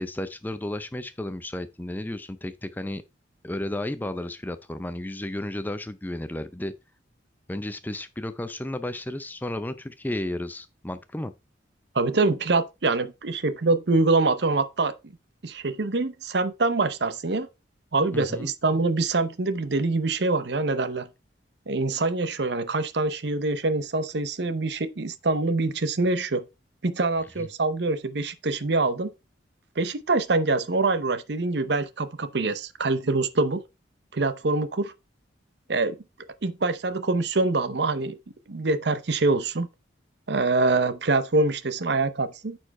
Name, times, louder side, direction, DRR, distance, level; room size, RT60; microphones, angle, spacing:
voice 1, 0.0-3.0 3.4-6.7 7.5-11.3 18.1-18.5 27.4-27.5, left 1 dB, 10° left, 0.4 m, -33 dB
voice 2, 11.9-15.1 15.4-17.5 17.9-21.1 21.7-26.4 26.8-29.1 29.8-33.6 34.1-34.9 35.7-36.0 36.4-38.2 38.5-39.7 40.3-42.6, right 3 dB, 65° right, 0.7 m, -25 dB
9.3 x 4.5 x 4.1 m
head